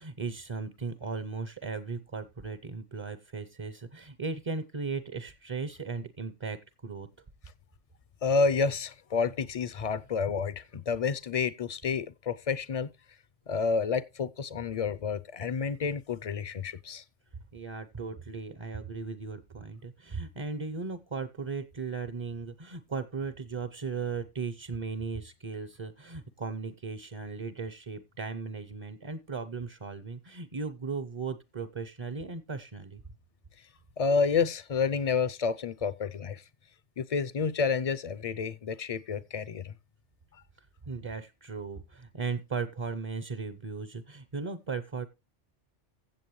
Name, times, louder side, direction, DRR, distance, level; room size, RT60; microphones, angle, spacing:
voice 1, 0.0-7.1 17.5-33.0 40.9-45.1, right 4 dB, 35° right, 0.6 m, -37 dB
voice 2, 8.2-12.9 13.5-17.0 34.0-36.4 37.0-39.7, left 5 dB, 45° left, 0.5 m, -29 dB
15.5 x 7.4 x 3.1 m
omnidirectional pair, 1.2 m